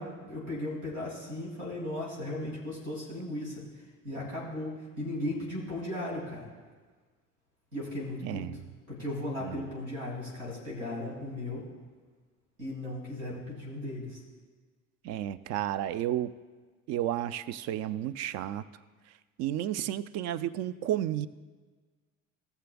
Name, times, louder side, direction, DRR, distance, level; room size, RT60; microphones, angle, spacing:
voice 1, 0.0-3.5 4.0-6.5 7.7-8.5 8.9-11.7 12.6-14.2, left 1 dB, 80° right, -5 dB, 2.8 m, -36 dB
voice 2, 8.2-8.6 9.4-9.6 15.0-16.3 16.9-18.6 19.4-21.3, right 12 dB, 40° right, 17 dB, 0.4 m, -32 dB
18.0 x 7.0 x 2.3 m, 1.4 s
figure-of-eight pair, 60°, 40 cm